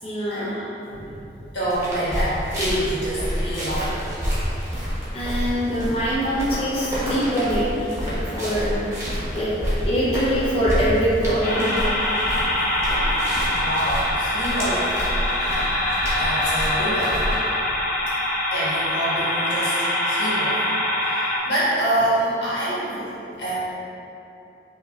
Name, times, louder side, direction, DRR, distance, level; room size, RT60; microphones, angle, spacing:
voice 1, 0.0-0.6 5.1-7.7 8.0-8.8 9.3-9.5 9.8-11.8, equal, 35° left, -8 dB, 0.7 m, -23 dB
voice 2, 1.5-4.1 13.6-14.9 15.5-15.8 16.1-17.2 18.5-20.7 21.0-23.1 23.4-23.6, right 1 dB, 85° left, -9 dB, 1.5 m, -26 dB
sound 1, 1.7-17.4, equal, 15° right, 1.2 m, -28 dB
sound 2, 11.4-21.4, left 1 dB, 50° left, 1.0 m, -24 dB
5.7 x 2.8 x 2.8 m, 2.8 s
head